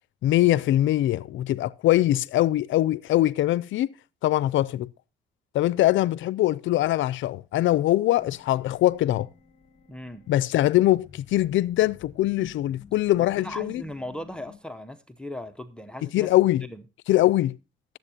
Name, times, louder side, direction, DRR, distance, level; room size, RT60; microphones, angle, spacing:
voice 1, 0.2-3.9 4.2-4.9 5.5-9.3 10.3-13.8 16.1-16.7 17.1-17.6, left 15 dB, 75° left, 0.4 m, -22 dB
sound 1, 8.2-14.6, left 6 dB, 35° left, 1.2 m, -50 dB
voice 2, 9.9-10.2 13.4-16.3 16.6-16.8, left 1 dB, 5° left, 0.7 m, -38 dB
18.5 x 7.9 x 2.8 m
cardioid pair, 90°, 20 cm